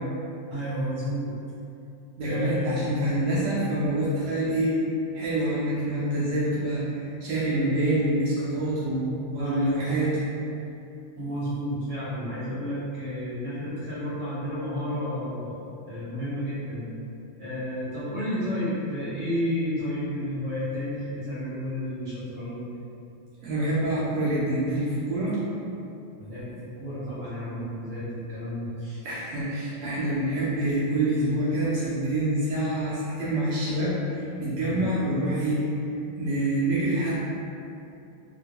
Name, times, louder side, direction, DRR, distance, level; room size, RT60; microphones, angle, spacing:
voice 1, 0.5-1.3 2.2-2.9 9.4-9.8 11.2-15.6 15.9-16.9 17.4-22.7 26.2-29.0 34.6-34.8, equal, 50° right, -13 dB, 0.7 m, -31 dB
voice 2, 2.2-4.8 5.1-10.3 23.4-25.4 29.0-35.6 36.2-37.2, right 1 dB, 80° right, -9 dB, 0.9 m, -26 dB
3.5 x 2.2 x 2.8 m, 2.7 s
omnidirectional pair, 2.4 m